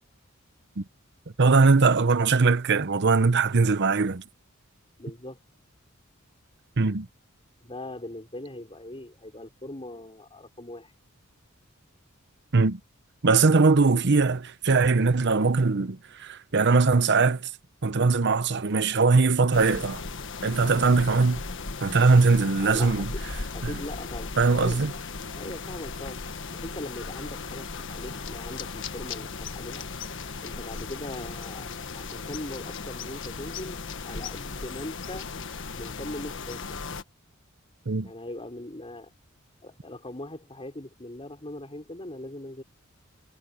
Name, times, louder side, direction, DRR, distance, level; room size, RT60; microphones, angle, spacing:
voice 1, 1.4-4.2 6.8-7.1 12.5-12.8 13.2-17.5 17.8-20.0 20.4-21.4 21.8-23.1 23.6-23.7 24.4-24.9 37.9-38.1, right 4 dB, 55° right, 0.8 m, -21 dB
voice 2, 5.0-5.4 7.6-10.9 22.6-23.1 23.3-24.8 25.4-26.2 26.5-29.9 30.4-33.8 34.1-35.3 35.8-36.8 38.0-39.1 39.6-42.6, left 1 dB, 25° left, 5.4 m, -40 dB
sound 1, 19.5-37.0, left 4 dB, 65° left, 1.5 m, -37 dB
head